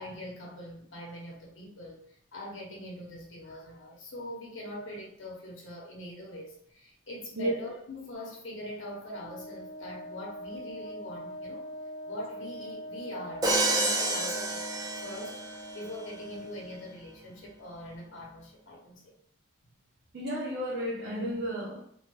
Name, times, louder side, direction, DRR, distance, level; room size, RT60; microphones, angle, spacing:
voice 1, 0.0-11.7 12.0-14.6 15.0-19.1, left 1 dB, 85° left, 0.8 m, -43 dB
Wind instrument woodwind instrument, 9.1-17.0, equal, 50° left, 0.5 m, -42 dB
Crash cymbal, 13.4-15.6, right 2 dB, 20° right, 0.3 m, -29 dB
voice 2, 20.1-21.9, equal, 60° right, 0.7 m, -32 dB
2.7 x 2.2 x 3.2 m
head